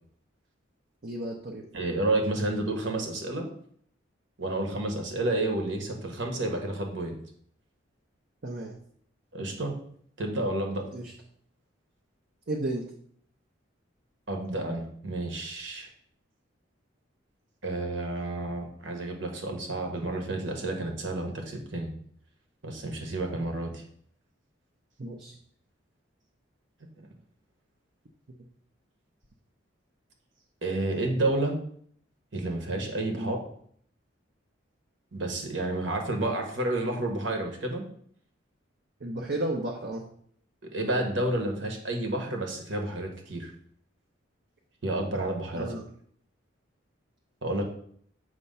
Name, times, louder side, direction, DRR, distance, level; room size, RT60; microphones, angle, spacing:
voice 1, 1.0-1.6 8.4-8.8 10.9-11.1 12.5-12.8 25.0-25.4 33.1-33.3 39.0-40.0 45.5-45.8, right 1 dB, 55° right, 0 dB, 0.8 m, -33 dB
voice 2, 1.7-3.5 4.4-7.2 9.3-9.8 10.2-10.9 14.3-15.9 17.6-21.9 22.6-23.8 30.6-31.6 32.3-33.4 35.1-37.8 40.6-43.5 44.8-45.7 47.4-47.6, right 2 dB, 70° right, 3 dB, 1.3 m, -30 dB
7.7 x 3.0 x 5.5 m, 0.62 s
head